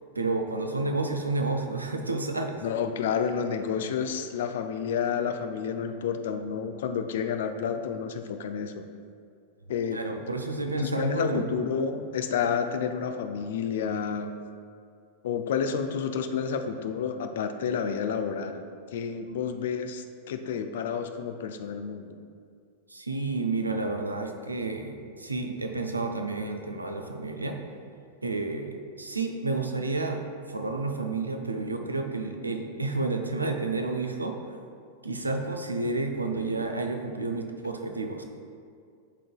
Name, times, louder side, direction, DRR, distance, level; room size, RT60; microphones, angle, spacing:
voice 1, 0.1-2.6 9.9-11.5 22.9-27.6 28.2-30.2 30.5-34.4 35.0-38.2, right 3 dB, 80° right, 4 dB, 0.5 m, -30 dB
voice 2, 2.6-8.9 9.7-10.0 10.8-14.3 15.2-18.6 18.9-22.2, left 7 dB, 60° left, 7 dB, 0.4 m, -30 dB
11.5 x 3.8 x 2.3 m, 2.3 s
figure-of-eight pair, 90°, 0 cm